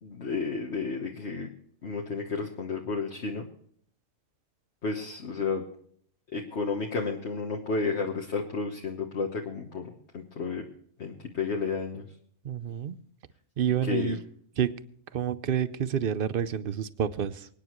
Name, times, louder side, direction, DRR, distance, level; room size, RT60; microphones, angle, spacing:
voice 1, 0.0-1.5 1.8-3.5 4.8-5.6 6.3-10.6 11.0-12.0 13.7-14.2, left 4 dB, 55° left, 0 dB, 1.4 m, -32 dB
voice 2, 12.4-12.9 13.6-14.2 14.6-14.7 15.1-17.5, right 9 dB, 50° right, 15 dB, 0.7 m, -28 dB
24.5 x 9.7 x 3.1 m, 0.63 s
omnidirectional pair, 1.4 m